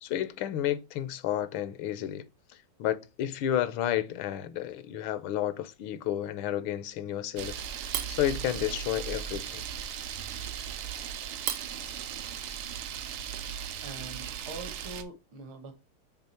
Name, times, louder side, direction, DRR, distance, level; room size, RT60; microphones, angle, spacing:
voice 1, 0.0-7.6 8.1-9.6, left 11 dB, 80° left, 1.4 m, -31 dB
Camera, 7.4-15.0, right 9 dB, 90° right, 1.6 m, -36 dB
voice 2, 13.8-15.7, right 3 dB, 75° right, 2.0 m, -43 dB
6.9 x 3.5 x 4.2 m
omnidirectional pair, 2.3 m